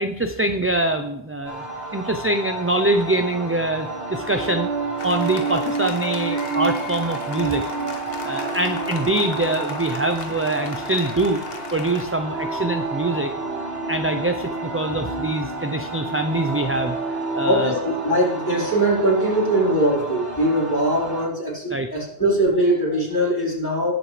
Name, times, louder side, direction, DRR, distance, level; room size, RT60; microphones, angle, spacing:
voice 1, 0.0-1.6 1.9-4.7 5.0-7.6 8.2-11.4 11.7-13.3 13.9-17.0 17.3-17.7 21.7-21.9, right 2 dB, 15° right, 6 dB, 0.5 m, -24 dB
sound 1, 1.4-21.3, right 2 dB, 45° right, 2.2 m, -33 dB
sound 2, 4.0-19.9, right 4 dB, 85° right, 1.2 m, -31 dB
Applause, 5.0-12.0, left 5 dB, 70° left, 1.2 m, -37 dB
voice 2, 17.4-23.9, right 1 dB, 20° left, -6 dB, 4.2 m, -21 dB
19.0 x 7.8 x 3.3 m, 0.78 s
omnidirectional pair, 1.0 m